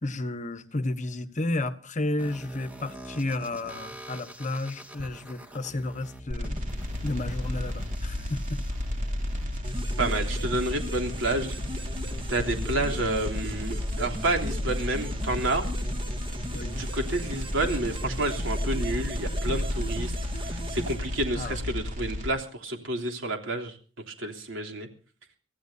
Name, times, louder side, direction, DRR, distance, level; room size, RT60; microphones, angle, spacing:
voice 1, 0.0-6.5 7.0-8.6 16.5-16.8 21.3-21.6, left 2 dB, 40° left, 1.3 m, -32 dB
sound 1, 2.2-10.2, equal, 10° right, 2.1 m, -45 dB
sound 2, 6.3-22.3, left 1 dB, 40° right, 3.2 m, -32 dB
sound 3, 9.6-21.7, equal, 25° right, 2.1 m, -39 dB
voice 2, 10.0-11.5 12.3-15.6 16.8-20.1 20.4-23.7 24.1-24.9, right 2 dB, 85° right, 3.3 m, -29 dB
25.0 x 16.0 x 2.8 m
head